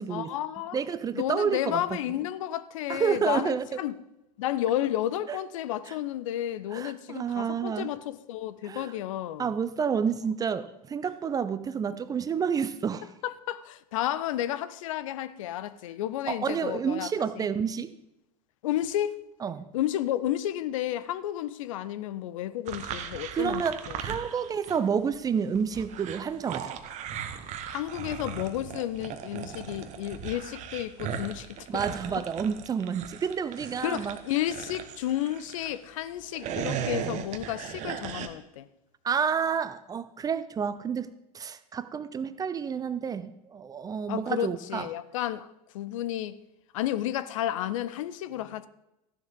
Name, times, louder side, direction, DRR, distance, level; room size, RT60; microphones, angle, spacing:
voice 1, 0.1-0.8 1.1-4.0 4.4-9.5 13.2-17.1 17.4-17.5 18.6-19.2 19.7-24.0 27.7-31.8 33.8-38.6 44.1-46.4 46.7-48.7, left 12 dB, 55° left, 0.6 m, -32 dB
voice 2, 0.7-1.8 2.9-3.8 5.3-5.4 5.9-6.0 6.7-7.9 8.6-8.9 9.4-13.1 16.3-17.9 19.4-19.7 23.3-26.7 31.7-34.2 39.0-44.9, right 7 dB, 20° right, 0.6 m, -29 dB
sound 1, 22.7-24.9 25.1-35.8 36.2-38.3, right 8 dB, 35° right, 1.2 m, -37 dB
14.5 x 10.5 x 3.7 m
figure-of-eight pair, 80°, 20 cm